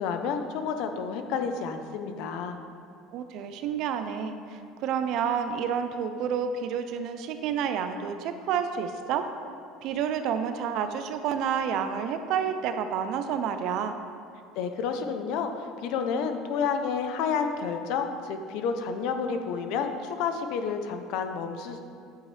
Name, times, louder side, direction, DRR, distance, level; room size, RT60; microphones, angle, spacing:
voice 1, 0.0-2.6 14.6-21.8, left 6 dB, 65° left, 7 dB, 0.8 m, -30 dB
voice 2, 3.1-9.3 9.8-14.0, right 7 dB, 60° right, 8 dB, 0.6 m, -29 dB
10.0 x 8.2 x 3.4 m, 2.4 s
cardioid pair, 140°, 0 cm